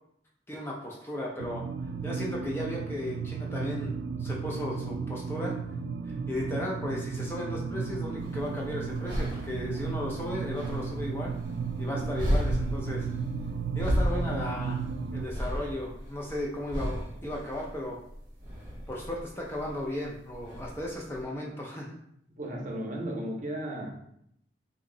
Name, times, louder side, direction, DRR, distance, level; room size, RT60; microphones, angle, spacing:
voice 1, 0.5-1.7 2.0-3.9 4.2-5.5 6.1-11.3 11.8-13.1 13.7-14.8 15.1-18.0 18.9-22.0, left 1 dB, 15° left, -2 dB, 0.4 m, -35 dB
sound 1, 1.4-15.3, right 5 dB, 80° right, 0.3 m, -34 dB
sound 2, 8.2-21.2, equal, 25° right, 1.0 m, -35 dB
voice 2, 11.9-12.4 22.4-23.9, right 1 dB, 45° right, -1 dB, 0.7 m, -35 dB
2.8 x 2.6 x 3.8 m, 0.74 s
head